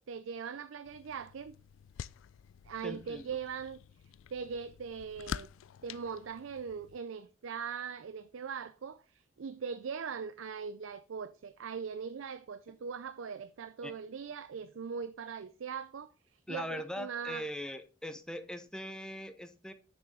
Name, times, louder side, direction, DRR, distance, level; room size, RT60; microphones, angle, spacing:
voice 1, 0.0-1.6 2.6-3.8 4.3-5.5 5.8-17.5, right 6 dB, 75° right, 0.5 m, -41 dB
sound 1, 0.8-7.0, left 8 dB, 80° left, 0.3 m, -47 dB
voice 2, 2.8-3.3 13.8-13.9 16.5-19.7, equal, 5° left, 0.6 m, -41 dB
7.0 x 6.0 x 5.1 m
head